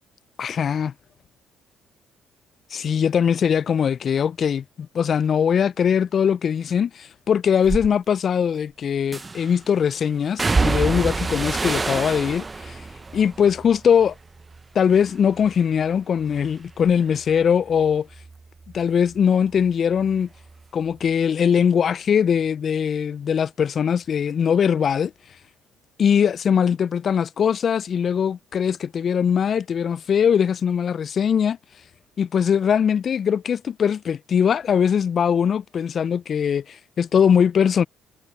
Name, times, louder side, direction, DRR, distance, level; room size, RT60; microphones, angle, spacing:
voice 1, 0.4-0.9 2.7-12.8 13.1-14.1 14.7-18.1 18.7-20.3 20.7-25.1 26.0-31.6 32.2-37.8, left 7 dB, 50° left, 0.7 m, -21 dB
sound 1, 7.6-7.9 9.1-9.6 10.4-14.6 14.9-15.6 15.9-19.2 19.5-20.6 20.9-21.1, right 3 dB, 25° right, 1.0 m, -28 dB
hypercardioid pair, 50°, 0 cm